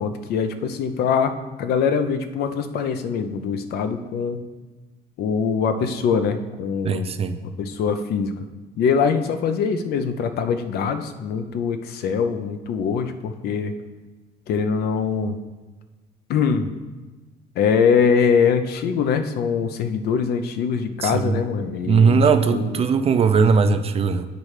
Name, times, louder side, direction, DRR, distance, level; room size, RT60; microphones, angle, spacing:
voice 1, 0.0-4.4 5.2-7.1 7.4-8.3 8.8-13.7 14.5-15.4 16.3-16.7 17.6-22.2 22.5-22.9, left 6 dB, 70° left, 9 dB, 0.6 m, -23 dB
voice 2, 6.8-7.4 21.0-21.4 21.9-24.3, right 5 dB, 35° right, 9 dB, 0.5 m, -19 dB
8.9 x 3.2 x 4.9 m, 1.2 s
cardioid pair, 110°, 17 cm